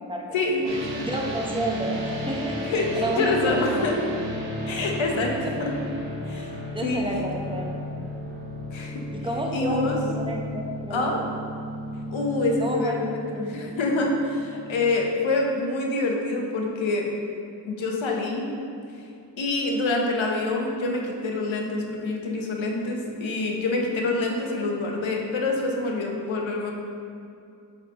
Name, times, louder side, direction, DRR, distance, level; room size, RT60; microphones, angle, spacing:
voice 1, 0.3-1.3 2.7-4.0 4.7-5.8 6.3-6.5 6.8-7.2 8.7-8.9 9.5-10.0 10.9-11.2 12.1-17.1 17.6-18.5 19.4-26.7, left 2 dB, 85° left, 0 dB, 1.0 m, -26 dB
sound 1, 0.6-14.8, left 1 dB, 70° right, 1.2 m, -34 dB
voice 2, 1.0-2.6 2.9-4.0 5.1-5.6 6.7-7.7 9.1-11.1 12.6-13.0 13.3-13.7, right 1 dB, 10° right, -1 dB, 1.0 m, -30 dB
6.3 x 4.9 x 3.8 m, 2.5 s
cardioid pair, 65°, 45 cm